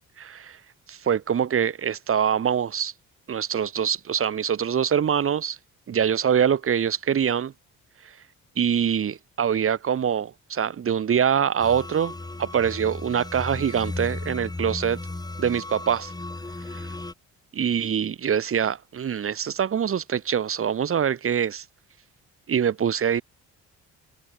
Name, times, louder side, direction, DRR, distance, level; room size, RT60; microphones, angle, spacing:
voice 1, 0.2-0.6 0.9-2.9 3.3-5.6 5.9-7.5 8.6-12.1 12.4-15.0 15.4-16.1 16.7-16.9 17.5-21.6 22.5-23.2, right 8 dB, 45° right, 1.5 m, -24 dB
sound 1, 11.6-17.1, left 2 dB, 15° left, 1.9 m, -35 dB
cardioid pair, 90°, 30 cm